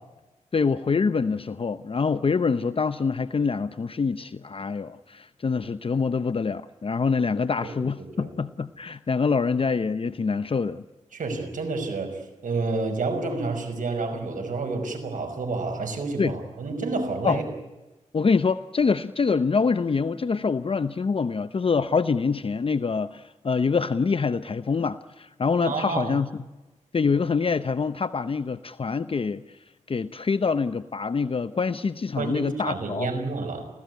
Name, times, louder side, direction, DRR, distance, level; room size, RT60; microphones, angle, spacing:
voice 1, 0.5-10.8 16.2-16.3 17.2-17.4 18.1-26.4 26.9-29.6 29.9-33.1, left 5 dB, 45° left, 12 dB, 0.7 m, -25 dB
voice 2, 8.0-8.3 11.1-17.4 25.6-26.2 32.2-33.7, right 3 dB, 85° right, 5 dB, 5.6 m, -29 dB
26.0 x 17.0 x 9.4 m, 1.1 s
wide cardioid pair, 85°, 13 cm